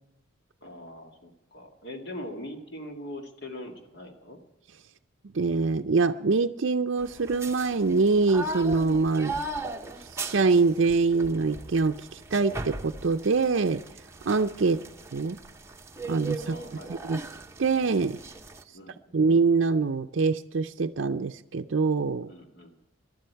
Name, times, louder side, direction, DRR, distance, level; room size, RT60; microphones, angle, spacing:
voice 1, 0.6-4.4 9.5-9.7 14.6-14.8 16.4-17.2 18.7-19.2 22.2-22.7, left 1 dB, 55° left, 3 dB, 2.1 m, -42 dB
voice 2, 5.3-9.4 10.1-13.8 14.3-14.8 15.1-15.4 16.1-16.6 16.9-17.2 17.6-18.2 19.1-22.3, right 4 dB, 60° right, 5 dB, 0.5 m, -24 dB
sound 1, 7.0-18.6, right 2 dB, 15° right, 0.8 m, -38 dB
19.5 x 12.0 x 4.6 m, 0.91 s
head